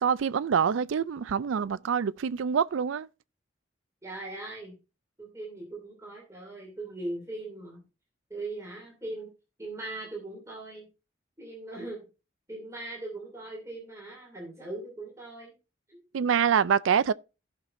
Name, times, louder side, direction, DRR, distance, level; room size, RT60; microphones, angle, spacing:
voice 1, 0.0-3.1 16.1-17.1, right 7 dB, 90° right, 0.4 m, -25 dB
voice 2, 4.0-4.8 5.2-7.8 8.3-9.3 9.6-10.9 11.4-12.0 12.5-15.5 15.9-16.0, right 2 dB, 15° right, 2.8 m, -39 dB
16.0 x 5.9 x 2.6 m
head